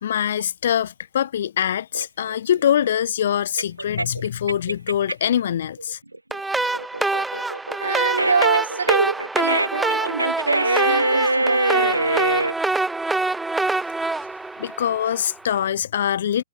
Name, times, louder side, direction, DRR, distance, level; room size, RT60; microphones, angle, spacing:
voice 1, 0.0-6.0 14.6-16.4, left 9 dB, 55° left, 2.0 m, -23 dB
sound 1, 1.9-5.4 5.8-12.5, right 2 dB, 85° right, 3.8 m, -24 dB
sound 2, 6.3-15.4, right 2 dB, 5° right, 2.4 m, -25 dB
voice 2, 7.8-12.0, right 5 dB, 70° right, 1.1 m, -25 dB
figure-of-eight pair, 120°, 0 cm